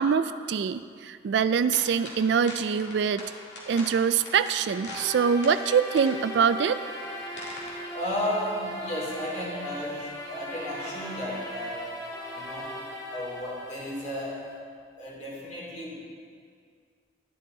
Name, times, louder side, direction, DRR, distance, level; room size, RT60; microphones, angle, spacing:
voice 1, 0.0-3.2 3.7-6.8, right 6 dB, 65° right, 13 dB, 0.3 m, -24 dB
sound 1, 1.7-8.1, left 2 dB, 65° left, 2.0 m, -43 dB
sound 2, 4.6-14.6, equal, 20° left, 1.6 m, -39 dB
voice 2, 7.9-11.9 12.3-12.7 13.1-14.4 15.0-16.0, left 1 dB, 40° left, -4 dB, 2.8 m, -33 dB
11.5 x 11.0 x 3.9 m, 2.1 s
head